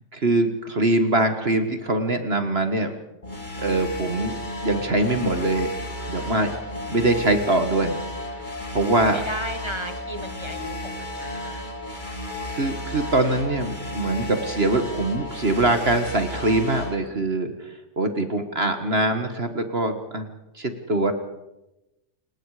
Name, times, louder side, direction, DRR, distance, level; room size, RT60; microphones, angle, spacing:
voice 1, 0.1-2.9 3.6-5.7 6.1-6.5 6.9-8.0 8.3-8.4 8.7-9.2 12.5-20.3 20.6-21.1, right 2 dB, 40° right, 7 dB, 1.8 m, -23 dB
sound 1, 3.2-17.0, left 1 dB, 30° left, 2.7 m, -33 dB
voice 2, 9.1-11.7, equal, 20° right, 8 dB, 1.2 m, -34 dB
29.5 x 18.0 x 5.0 m, 0.93 s
omnidirectional pair, 1.6 m